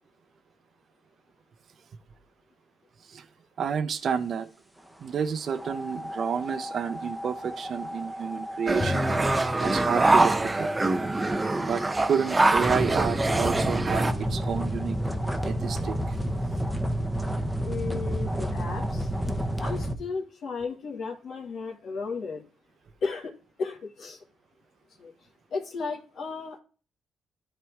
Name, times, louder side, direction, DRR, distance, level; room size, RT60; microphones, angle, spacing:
voice 1, 3.6-4.5 5.0-9.1 9.5-10.7 11.6-15.0 15.4-16.0, right 7 dB, 55° right, 0.9 m, -30 dB
sound 1, 5.5-19.9, equal, ahead, 1.1 m, -31 dB
sound 2, 8.7-14.1, right 2 dB, 20° right, 0.7 m, -24 dB
Drum, 8.8-11.2, left 4 dB, 35° left, 0.4 m, -37 dB
voice 2, 17.6-19.1 19.6-22.4 23.0-24.2 25.0-25.1 25.5-26.6, left 4 dB, 60° left, 1.9 m, -34 dB
12.5 x 4.3 x 3.5 m
cardioid pair, 90°, 0 cm